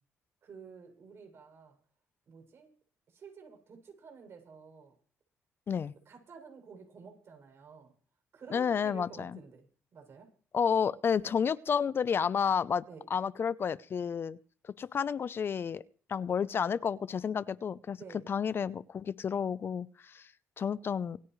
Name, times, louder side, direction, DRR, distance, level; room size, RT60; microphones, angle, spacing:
voice 1, 0.4-1.8 2.3-2.7 3.1-4.9 6.1-7.9 8.3-9.7 9.9-10.3 12.9-13.1 18.0-18.3, right 5 dB, 55° right, 7.2 m, -51 dB
voice 2, 8.5-9.4 10.5-12.8 13.1-14.4 14.8-15.8 16.1-18.0 18.3-20.3 20.6-21.2, left 7 dB, 50° left, 0.7 m, -31 dB
26.5 x 10.0 x 3.2 m
supercardioid pair, 75°, 5 cm